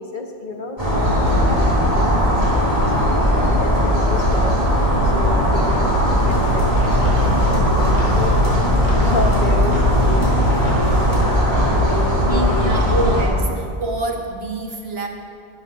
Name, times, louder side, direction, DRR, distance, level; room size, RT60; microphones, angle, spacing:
voice 1, 0.0-4.6 5.1-10.9 11.7-13.1, left 2 dB, 50° left, 2 dB, 1.2 m, -31 dB
sound 1, 0.8-13.3, equal, 35° right, 2.5 m, -18 dB
sound 2, 6.1-11.4, left 3 dB, 50° right, 3.3 m, -26 dB
voice 2, 7.8-8.2 12.2-15.1, right 2 dB, 70° right, 2 dB, 1.5 m, -26 dB
11.0 x 7.8 x 6.2 m, 2.3 s
omnidirectional pair, 1.1 m